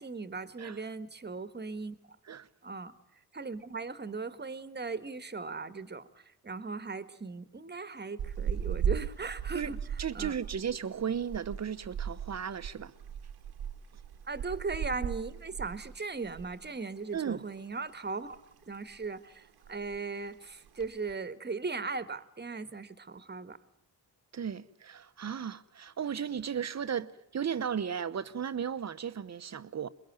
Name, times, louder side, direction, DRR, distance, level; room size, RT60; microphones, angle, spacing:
voice 1, 0.0-2.0 2.6-3.0 3.3-9.8 10.1-10.4 14.3-18.4 18.7-23.6, right 4 dB, 25° right, 1.6 m, -38 dB
sound 1, 8.2-16.7 17.0-17.2 17.6-18.4 18.7-19.1 19.4-19.5 19.6-20.1 20.6-21.1, right 8 dB, 85° right, 1.6 m, -37 dB
voice 2, 10.0-12.9 17.1-17.4 24.3-29.9, right 7 dB, 45° right, 1.1 m, -35 dB
23.5 x 22.0 x 9.3 m
cardioid pair, 85°, 37 cm